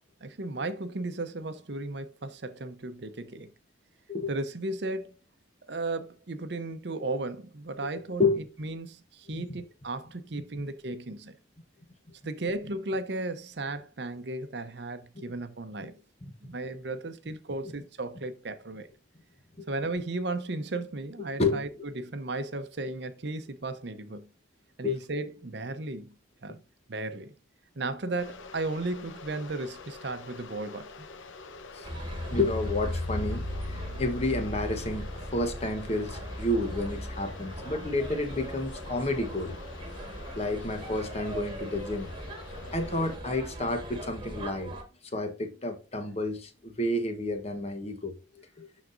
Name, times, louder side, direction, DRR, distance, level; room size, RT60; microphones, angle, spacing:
voice 1, 0.2-3.5 4.3-5.2 5.6-8.2 8.6-11.3 12.2-18.9 19.7-21.7 21.9-24.3 24.8-26.1 26.4-26.6 26.9-27.3 27.8-31.1, right 2 dB, 60° right, 0.7 m, -35 dB
voice 2, 21.3-21.6 24.8-25.0 26.5-26.6 31.7-31.9 32.3-39.6 40.3-42.1 42.7-48.7, left 2 dB, 35° left, 1.1 m, -30 dB
sound 1, 28.2-43.2, left 4 dB, 85° left, 0.8 m, -46 dB
sound 2, 31.8-44.8, equal, 25° right, 1.5 m, -38 dB
12.0 x 4.1 x 2.5 m
head